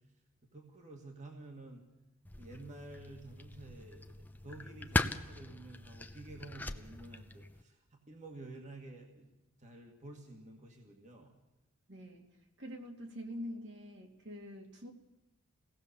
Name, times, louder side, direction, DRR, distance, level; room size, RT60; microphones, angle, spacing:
voice 1, 0.5-1.8 2.4-4.0 4.4-9.3 9.6-11.3, right 2 dB, 35° right, 2 dB, 2.1 m, -51 dB
sound 1, 2.2-7.6, left 2 dB, 10° left, 0.7 m, -39 dB
voice 2, 11.9-12.3 12.6-14.9, equal, 55° right, 2 dB, 2.6 m, -45 dB
24.5 x 17.5 x 7.0 m, 1.0 s
head